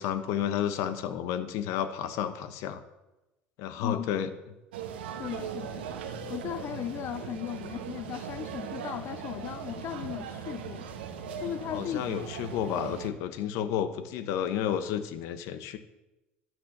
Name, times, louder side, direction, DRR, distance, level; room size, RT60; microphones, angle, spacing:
voice 1, 0.0-2.8 3.6-4.3 11.7-15.8, left 9 dB, 70° left, 1.1 m, -31 dB
voice 2, 3.8-4.1 5.1-5.9 6.3-10.9 11.4-12.1, left 11 dB, 50° left, 0.4 m, -37 dB
sound 1, 4.7-13.1, right 7 dB, 85° right, 1.2 m, -39 dB
sound 2, 5.2-12.0, left 2 dB, 20° left, 3.2 m, -55 dB
12.5 x 9.2 x 6.6 m
hypercardioid pair, 65°, 5 cm